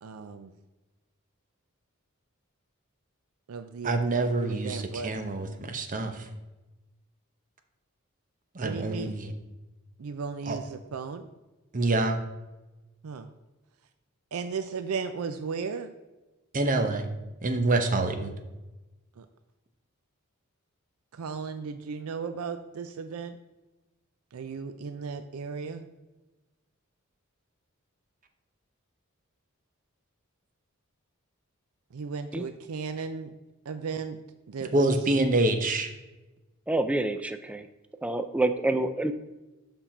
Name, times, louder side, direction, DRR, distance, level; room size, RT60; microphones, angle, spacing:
voice 1, 0.0-0.5 3.5-5.1 8.6-9.1 10.0-11.3 13.0-13.3 14.3-15.9 19.2-19.3 21.1-23.4 24.3-25.9 31.9-33.3 33.7-34.2 34.5-34.9, right 5 dB, 80° right, 9 dB, 0.5 m, -35 dB
voice 2, 3.8-6.3 8.5-9.3 10.5-10.6 11.7-12.2 16.5-17.1 17.4-18.3 34.7-35.9, right 2 dB, 40° right, 7 dB, 0.8 m, -26 dB
voice 3, 36.7-37.6 38.0-39.1, right 2 dB, 5° right, 9 dB, 0.3 m, -27 dB
7.1 x 5.7 x 4.3 m, 1.1 s
head